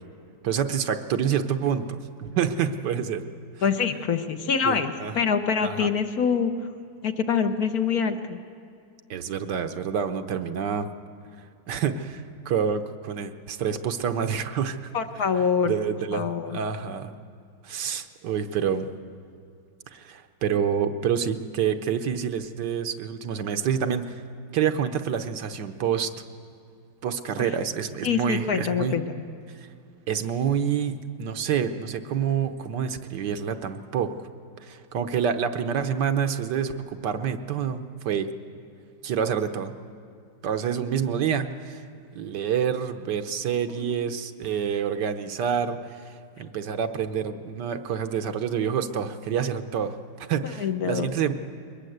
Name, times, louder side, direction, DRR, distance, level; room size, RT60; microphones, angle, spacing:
voice 1, 0.4-3.2 4.6-5.1 5.6-5.9 9.1-10.9 11.7-14.8 15.6-17.1 17.6-18.9 19.9-24.2 24.5-26.1 27.0-29.0 30.1-34.1 34.6-38.3 39.0-39.7 40.4-41.8 42.1-51.3, right 7 dB, 70° right, 8 dB, 1.5 m, -27 dB
voice 2, 3.6-6.5 7.0-8.4 14.9-15.7 16.1-16.6 27.4-27.5 28.0-29.0 43.8-43.9 50.6-51.1, left 6 dB, 60° left, 7 dB, 1.3 m, -25 dB
22.0 x 20.5 x 7.9 m, 2.4 s
omnidirectional pair, 2.0 m